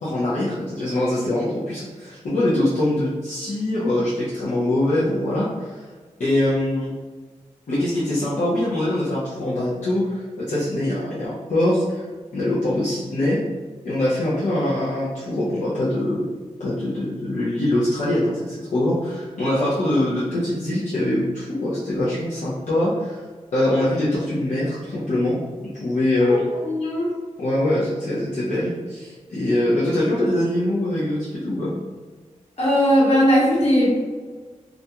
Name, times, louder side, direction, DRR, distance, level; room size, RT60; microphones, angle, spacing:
voice 1, 0.0-5.8 6.2-6.9 7.7-12.1 12.3-13.4 13.8-16.3 16.6-23.2 23.5-25.4 25.7-26.4 27.4-31.7, left 1 dB, 70° left, -9 dB, 0.6 m, -23 dB
voice 2, 26.6-27.1 32.6-34.2, equal, 55° left, -7 dB, 1.2 m, -18 dB
2.4 x 2.2 x 2.8 m, 1.4 s
cardioid pair, 55°, 13 cm